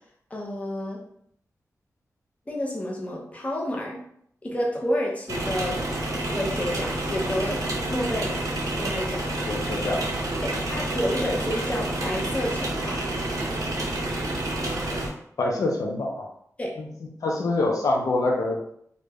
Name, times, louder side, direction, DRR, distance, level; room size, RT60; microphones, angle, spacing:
voice 1, 0.3-1.0 2.5-4.0 4.4-5.9 6.3-7.6 7.9-8.5 8.8-9.2 10.4-13.0 16.6-16.7, equal, 25° left, -2 dB, 0.7 m, -29 dB
sound 1, 5.3-15.1, right 1 dB, 85° right, 0.6 m, -29 dB
voice 2, 9.5-10.1 15.4-16.3 16.8-16.9 17.2-18.7, left 2 dB, 75° left, 0 dB, 0.5 m, -25 dB
2.4 x 2.2 x 3.3 m, 0.68 s
wide cardioid pair, 100°, 6 cm